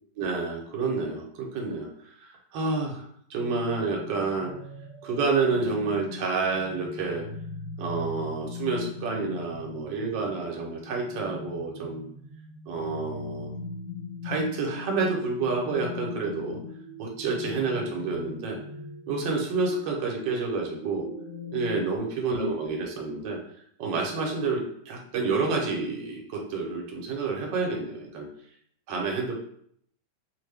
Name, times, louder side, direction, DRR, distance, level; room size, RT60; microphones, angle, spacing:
voice 1, 0.1-1.9 2.2-4.5 5.0-7.2 7.8-12.0 12.7-13.5 14.2-16.6 17.0-18.6 19.1-21.1 21.5-23.4 23.8-28.3 28.9-29.4, right 4 dB, 75° right, 0 dB, 1.4 m, -29 dB
sound 1, 3.4-22.0, left 3 dB, 60° right, 1.5 m, -40 dB
3.3 x 2.1 x 3.3 m, 0.66 s
omnidirectional pair, 2.1 m